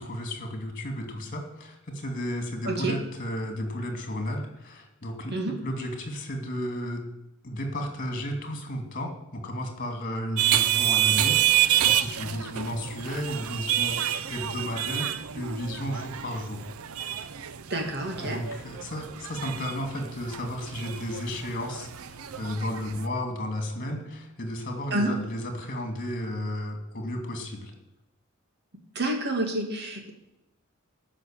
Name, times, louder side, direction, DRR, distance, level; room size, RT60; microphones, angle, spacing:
voice 1, 0.0-7.1 7.4-16.6 18.1-27.7, left 1 dB, 40° left, 4 dB, 2.6 m, -33 dB
sound 1, 10.4-23.1, right 11 dB, 90° right, 0.6 m, -28 dB
voice 2, 17.7-18.4 24.9-25.1 28.9-30.1, right 1 dB, 55° right, 2 dB, 2.5 m, -28 dB
13.5 x 6.0 x 8.9 m, 0.91 s
head